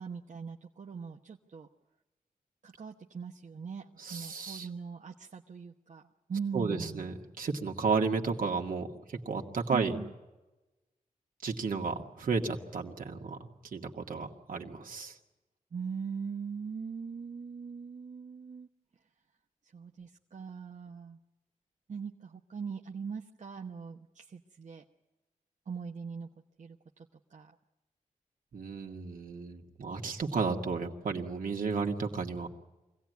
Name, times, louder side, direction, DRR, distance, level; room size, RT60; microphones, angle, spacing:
voice 1, 0.0-1.7 2.6-6.0 6.3-7.1 9.7-10.1 15.7-18.7 19.6-21.2 21.9-24.8 25.7-26.3 26.6-27.5, right 6 dB, 60° right, 1 dB, 1.1 m, -41 dB
voice 2, 4.0-4.7 6.5-10.0 11.4-15.2 28.5-32.5, right 4 dB, 75° right, 2 dB, 2.2 m, -33 dB
24.5 x 17.0 x 9.4 m, 1.1 s
wide cardioid pair, 85°, 14 cm